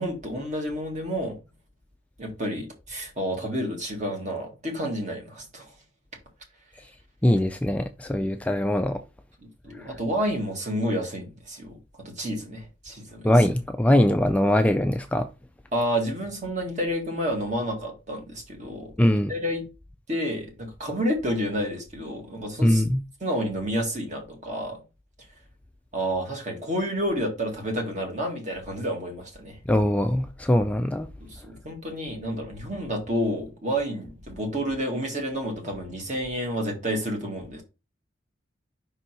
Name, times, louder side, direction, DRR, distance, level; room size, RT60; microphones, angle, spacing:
voice 1, 0.0-1.4 2.2-5.7 9.6-13.3 15.7-18.9 19.3-19.7 20.1-22.8 23.2-24.8 25.9-29.6 31.2-37.6, equal, 40° right, 1.9 m, -30 dB
voice 2, 7.2-9.0 13.2-15.3 19.0-19.3 22.6-23.0 29.7-31.1, left 1 dB, 5° left, 0.4 m, -21 dB
5.5 x 4.0 x 4.4 m
head